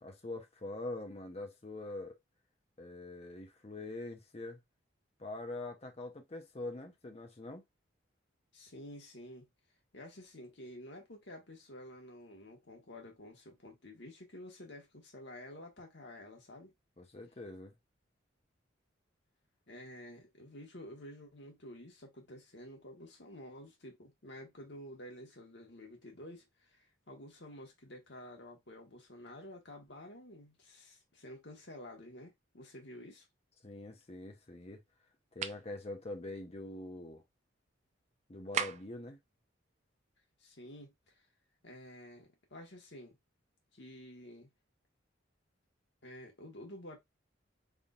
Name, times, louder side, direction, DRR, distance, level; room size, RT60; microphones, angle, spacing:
voice 1, 0.0-2.1 2.8-4.6 5.2-7.6 17.0-17.7 33.6-34.8 35.3-37.2 38.3-39.2, left 2 dB, 30° left, 0.7 m, -44 dB
voice 2, 8.5-9.4 9.9-16.7 19.7-33.2 40.4-41.2 41.6-43.2 43.7-44.5 46.0-47.0, left 1 dB, 60° left, 1.4 m, -50 dB
sound 1, 35.3-35.7 38.5-39.0, right 7 dB, 35° right, 0.3 m, -36 dB
3.9 x 3.6 x 2.4 m
head